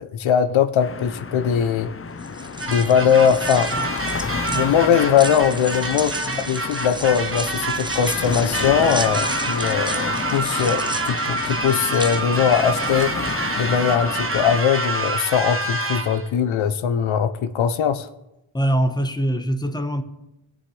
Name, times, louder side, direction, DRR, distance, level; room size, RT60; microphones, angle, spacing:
voice 1, 0.0-1.9 2.7-3.7 4.0-4.1 4.5-6.1 6.4-13.1 13.6-18.1, left 8 dB, 90° left, 0.7 m, -20 dB
sound 1, 0.8-14.6, left 5 dB, 30° left, 0.6 m, -31 dB
sound 2, 2.2-13.3, right 2 dB, 10° right, 0.6 m, -35 dB
sound 3, 2.6-16.3, right 2 dB, 30° right, 1.3 m, -27 dB
voice 2, 18.5-20.0, right 1 dB, 10° left, 1.0 m, -23 dB
17.5 x 6.4 x 3.2 m
cardioid pair, 55°, 46 cm